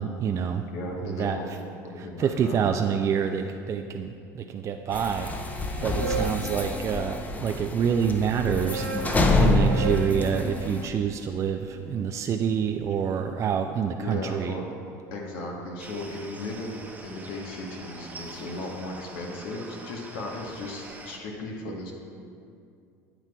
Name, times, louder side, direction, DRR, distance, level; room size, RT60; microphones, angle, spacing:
voice 1, 0.0-0.6 1.0-1.6 1.9-14.6, right 7 dB, 35° right, 5 dB, 0.3 m, -27 dB
voice 2, 0.6-2.9 5.9-6.2 13.3-13.4 14.0-14.7 15.1-21.9, left 2 dB, 70° left, 0 dB, 1.1 m, -36 dB
sound 1, 4.9-10.9, left 2 dB, 20° left, 0.6 m, -27 dB
sound 2, 5.6-7.4 8.2-12.3, right 4 dB, 85° right, 1.8 m, -36 dB
sound 3, 15.8-21.2, right 3 dB, 20° right, 0.8 m, -44 dB
8.9 x 7.9 x 2.3 m, 2.4 s
supercardioid pair, 95°, 9 cm